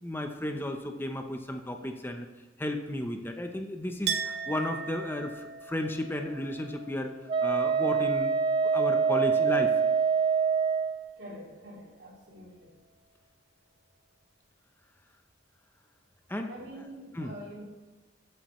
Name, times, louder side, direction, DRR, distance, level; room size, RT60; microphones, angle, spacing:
voice 1, 0.0-2.3 2.6-7.1 7.4-8.3 8.7-9.7 16.3-16.5 17.1-17.3, left 1 dB, 10° left, 4 dB, 0.7 m, -33 dB
Chink clink, 4.1-9.6 9.9-10.7, right 6 dB, 65° right, 0.9 m, -40 dB
Wind instrument woodwind instrument, 7.3-11.0, right 6 dB, 30° right, 0.4 m, -25 dB
voice 2, 11.2-12.7 16.5-17.6, equal, 80° right, -3 dB, 3.1 m, -45 dB
14.5 x 7.9 x 3.1 m, 1.3 s
head